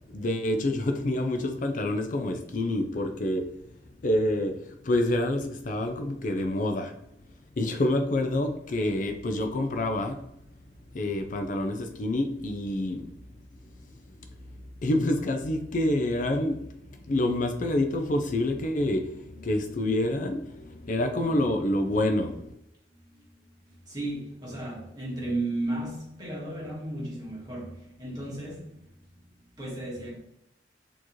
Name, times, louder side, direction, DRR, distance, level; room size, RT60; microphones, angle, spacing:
voice 1, 0.1-3.6 4.0-7.1 7.6-10.2 10.9-13.1 13.6-22.5, left 1 dB, 45° left, 0.4 m, -28 dB
voice 2, 22.9-30.2, right 2 dB, 25° right, 1.5 m, -35 dB
4.4 x 2.9 x 3.0 m
head